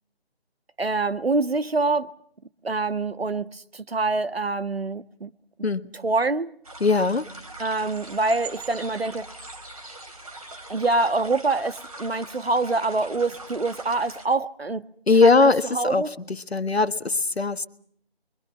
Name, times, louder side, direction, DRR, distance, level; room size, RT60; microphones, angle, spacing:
voice 1, 0.8-2.1 2.6-5.3 6.0-6.5 7.6-9.3 10.7-14.9 15.2-16.1, right 3 dB, 70° right, 1.5 m, -25 dB
sound 1, 6.6-14.3, right 2 dB, 35° right, 2.9 m, -42 dB
voice 2, 6.8-7.3 15.1-17.7, left 4 dB, 80° left, 1.6 m, -20 dB
28.0 x 24.0 x 5.7 m
figure-of-eight pair, 180°, 31 cm